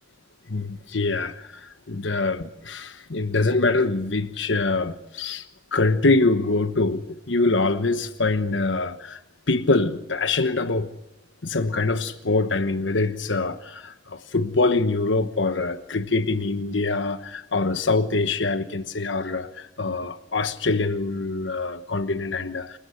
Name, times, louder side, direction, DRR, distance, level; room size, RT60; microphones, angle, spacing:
voice 1, 0.5-5.4 5.7-9.2 9.5-10.9 11.4-22.8, left 3 dB, 80° left, 1.2 m, -24 dB
27.5 x 15.0 x 7.8 m
head